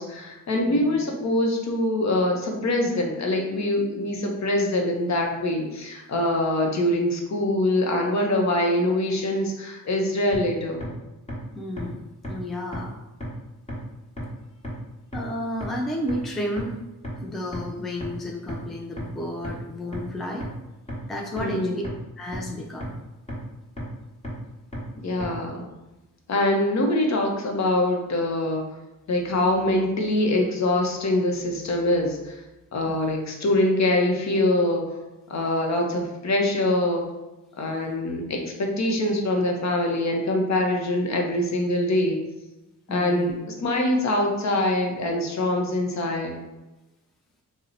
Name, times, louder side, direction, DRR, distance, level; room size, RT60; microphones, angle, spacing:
voice 1, 0.0-10.8 21.4-21.8 25.0-25.7 26.3-28.7 29.1-32.4 32.7-34.9 35.3-37.1 37.6-42.2 42.9-46.4, left 1 dB, 50° left, 2 dB, 0.7 m, -24 dB
voice 2, 0.7-1.0 11.6-12.0 12.3-12.9 15.1-16.8 17.2-20.5 21.1-21.8 22.2-22.9 32.9-33.1 42.9-43.3, left 1 dB, ahead, 0 dB, 0.4 m, -32 dB
sound 1, 10.3-10.4 10.8-10.9 11.3-11.4 11.8-11.9 12.2-12.3 12.7-12.8 13.2-13.3 13.7-13.8 14.2-14.3 14.6-14.7 15.1-15.2 15.6-15.7 16.1-16.2 16.6-16.7 17.0-17.1 17.5-17.6 18.0-18.1 18.5-18.6 19.0-19.1 19.4-19.5 19.9-20.0 20.4-20.5 20.9-21.0 21.4-21.5 21.8-21.9 22.3-22.4 22.8-22.9 23.3-23.4 23.8-23.9 24.2-24.3 24.7-24.8 25.2-25.3, left 1 dB, 20° left, 1.0 m, -32 dB
2.8 x 2.0 x 3.8 m, 1.0 s
cardioid pair, 80°, 35 cm